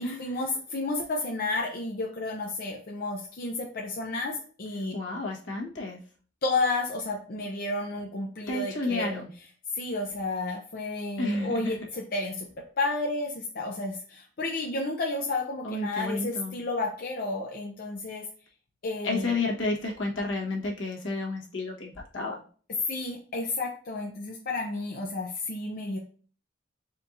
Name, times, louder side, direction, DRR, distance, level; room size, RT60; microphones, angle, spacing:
voice 1, 0.0-5.0 6.4-9.2 9.7-12.5 12.8-18.3 18.8-19.4 22.9-26.0, left 2 dB, 50° left, 0 dB, 0.6 m, -31 dB
voice 2, 4.9-6.0 8.5-9.3 11.2-11.8 15.6-16.5 19.0-22.4, left 2 dB, 75° left, -2 dB, 1.2 m, -31 dB
4.4 x 2.5 x 3.9 m, 0.42 s
head